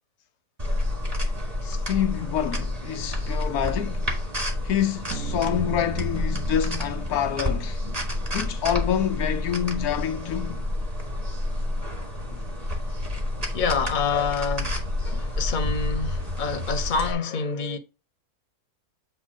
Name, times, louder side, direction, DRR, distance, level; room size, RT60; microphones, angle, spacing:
sound 1, 0.6-17.1, left 1 dB, 25° right, 1.6 m, -29 dB
voice 1, 1.6-4.0 4.6-7.8 8.3-10.6 12.3-12.4, left 10 dB, 80° left, 1.1 m, -27 dB
sound 2, 5.1-8.0, right 9 dB, 65° right, 1.5 m, -38 dB
voice 2, 13.5-14.7 15.0-17.8, left 5 dB, 35° left, 1.0 m, -27 dB
8.0 x 2.9 x 6.2 m
omnidirectional pair, 1.6 m